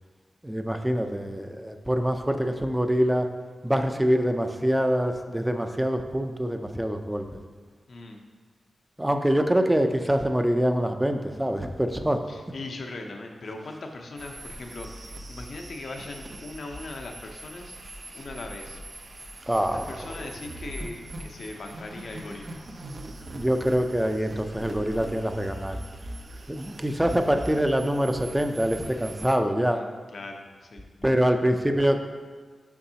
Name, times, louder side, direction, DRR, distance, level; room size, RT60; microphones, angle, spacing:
voice 1, 0.4-3.3 3.6-7.4 9.0-12.2 19.5-19.9 23.4-25.8 26.5-29.8 31.0-32.0, equal, 10° right, 6 dB, 0.6 m, -25 dB
voice 2, 7.9-8.2 12.3-17.8 18.1-18.8 19.6-22.6 29.7-29.9 30.1-31.1, left 2 dB, 70° left, 3 dB, 0.8 m, -40 dB
sound 1, 14.2-29.3, right 1 dB, 60° right, 0.8 m, -41 dB
7.0 x 5.3 x 2.9 m, 1.6 s
cardioid pair, 45°, 0 cm